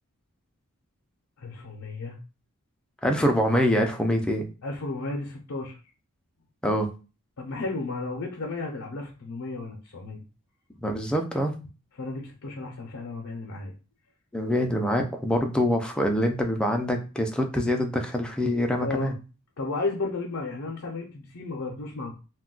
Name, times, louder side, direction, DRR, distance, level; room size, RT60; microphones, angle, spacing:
voice 1, 1.4-2.2 4.6-5.8 7.4-10.2 12.0-13.7 18.8-19.1 19.6-22.1, left 3 dB, 65° left, 0 dB, 0.5 m, -33 dB
voice 2, 3.0-4.5 6.6-6.9 10.8-11.5 14.3-19.1, equal, 5° left, 3 dB, 0.3 m, -25 dB
2.3 x 2.1 x 3.6 m, 0.33 s
head